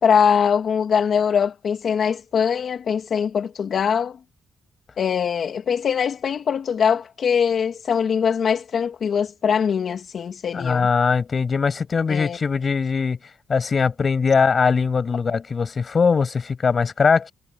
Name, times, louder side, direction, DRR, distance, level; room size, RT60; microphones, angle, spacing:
voice 1, 0.0-4.2 5.0-10.9 12.1-12.4, left 7 dB, 55° left, 2.7 m, -22 dB
voice 2, 10.5-13.2 13.5-17.3, left 5 dB, 35° left, 7.6 m, -21 dB
cardioid pair, 130°, 0 cm